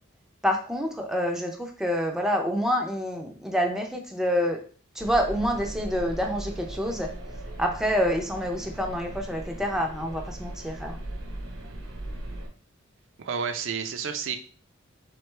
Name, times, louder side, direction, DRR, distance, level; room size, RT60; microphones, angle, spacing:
voice 1, 0.4-4.6 5.0-7.1 7.6-11.0, equal, 5° right, 2 dB, 0.4 m, -27 dB
sound 1, 5.0-12.5, right 1 dB, 85° right, 0.9 m, -38 dB
voice 2, 13.2-14.4, right 6 dB, 65° right, 7 dB, 0.4 m, -30 dB
3.8 x 3.2 x 3.2 m, 0.41 s
head